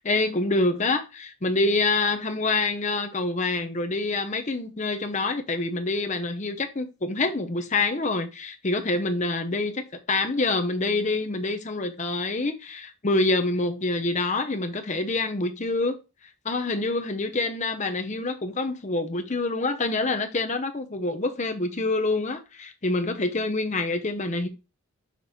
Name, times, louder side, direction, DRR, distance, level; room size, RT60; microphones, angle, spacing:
voice 1, 0.0-16.0 16.4-24.5, left 2 dB, 30° left, 0.7 m, -26 dB
5.9 x 3.1 x 5.5 m
head